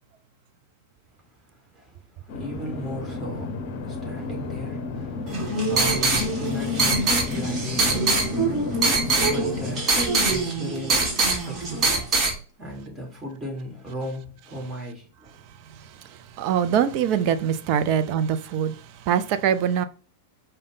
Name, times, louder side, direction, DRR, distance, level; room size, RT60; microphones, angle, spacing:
voice 1, 1.5-15.4 15.9-16.1, equal, 15° right, 1.8 m, -37 dB
sound 1, 2.3-9.8, left 3 dB, 50° left, 0.7 m, -32 dB
sound 2, 5.3-12.3, right 3 dB, 30° right, 1.3 m, -23 dB
voice 2, 16.4-19.8, right 8 dB, 45° right, 0.4 m, -23 dB
4.9 x 2.2 x 4.0 m
figure-of-eight pair, 95°, 0 cm